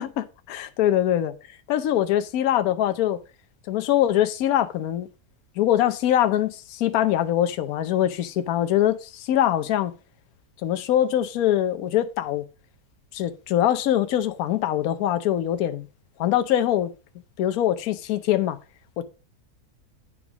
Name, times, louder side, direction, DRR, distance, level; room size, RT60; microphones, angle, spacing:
voice 1, 0.0-1.3 1.7-3.2 3.7-5.1 5.6-9.9 10.6-12.4 13.1-15.9 16.2-16.9 17.4-18.6 19.0-19.1, left 11 dB, 70° left, 1.1 m, -23 dB
8.6 x 5.1 x 4.8 m
omnidirectional pair, 1.6 m